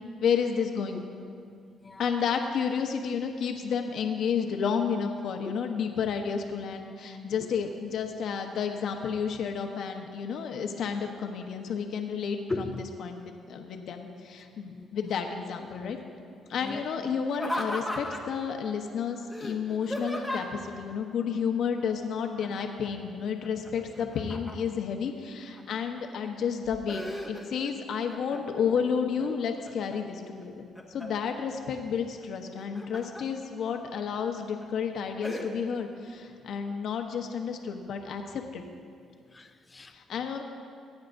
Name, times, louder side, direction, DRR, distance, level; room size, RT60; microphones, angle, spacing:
voice 1, 0.2-1.0 2.0-12.4 13.0-16.0 16.5-30.5 30.9-38.6 39.9-40.4, left 6 dB, 70° left, 4 dB, 1.0 m, -31 dB
voice 2, 12.5-12.9 14.6-15.1 16.6-16.8 39.3-39.9, left 2 dB, 25° left, 8 dB, 0.7 m, -38 dB
Laughter, 17.3-18.4 19.3-20.7 22.4-22.9 23.2-24.8 25.4-26.0 26.4-27.7 28.1-28.7 29.2-30.0 30.4-31.3 32.4-33.2 33.7-33.8 34.4-34.7 35.2-35.5, left 1 dB, ahead, 1.5 m, -37 dB
19.5 x 9.4 x 2.6 m, 2.3 s
cardioid pair, 90°, 0 cm